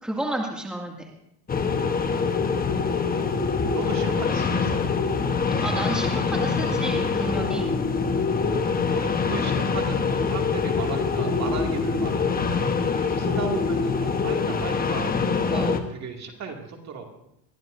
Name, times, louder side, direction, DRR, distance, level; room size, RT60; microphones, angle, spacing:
voice 1, 0.0-1.1 5.6-7.7 15.5-15.8, right 1 dB, ahead, -1 dB, 2.2 m, -31 dB
sound 1, 1.5-15.8, left 5 dB, 20° left, 1.1 m, -24 dB
voice 2, 2.6-3.2 3.7-4.8 8.9-12.1 13.0-15.2 15.4-17.1, right 5 dB, 35° right, 2 dB, 2.4 m, -36 dB
22.0 x 14.0 x 2.7 m, 0.74 s
supercardioid pair, 120°, 46 cm